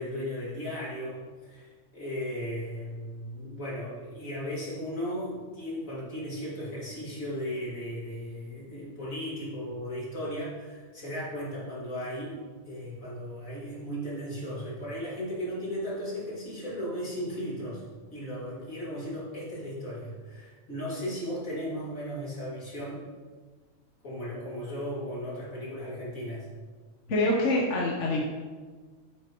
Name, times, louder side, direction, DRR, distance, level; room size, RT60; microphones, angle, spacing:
voice 1, 0.0-17.8 18.1-23.0 24.0-26.5, equal, 85° left, -7 dB, 3.0 m, -36 dB
voice 2, 27.1-28.2, left 1 dB, 65° left, -3 dB, 1.4 m, -25 dB
9.2 x 8.1 x 3.0 m, 1.4 s
omnidirectional pair, 1.4 m